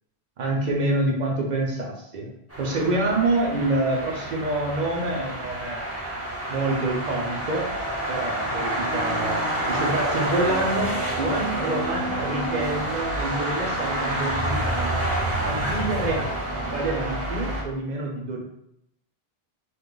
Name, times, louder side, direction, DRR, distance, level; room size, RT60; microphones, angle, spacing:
voice 1, 0.4-5.8 6.5-7.7 8.1-9.4 9.7-15.0 15.5-16.4 16.7-18.4, right 2 dB, 55° right, 0 dB, 0.6 m, -27 dB
sound 1, 2.5-17.6, right 1 dB, 15° right, 0.6 m, -28 dB
2.7 x 2.2 x 3.7 m, 0.79 s
omnidirectional pair, 1.0 m